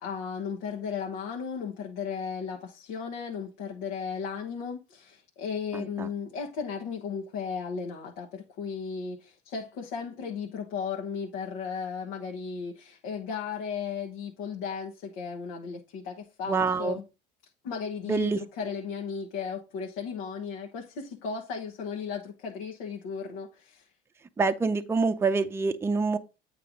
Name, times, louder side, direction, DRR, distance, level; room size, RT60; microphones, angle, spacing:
voice 1, 0.0-17.0 17.6-23.9, left 6 dB, 80° left, 1.3 m, -35 dB
voice 2, 5.7-6.1 16.5-17.0 18.1-18.4 24.4-26.2, right 4 dB, 15° right, 0.5 m, -26 dB
8.5 x 3.3 x 5.1 m
cardioid pair, 115°, 19 cm